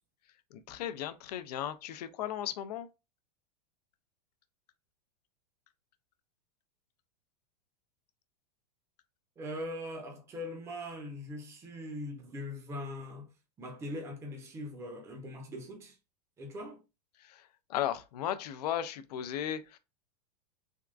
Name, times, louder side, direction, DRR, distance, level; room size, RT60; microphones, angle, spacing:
voice 1, 0.5-2.9 17.2-19.8, left 11 dB, 70° left, 0.5 m, -36 dB
voice 2, 9.4-13.3 13.6-16.0 16.4-16.8, left 1 dB, 15° right, 0.6 m, -41 dB
3.5 x 2.2 x 2.4 m
supercardioid pair, 150°, 21 cm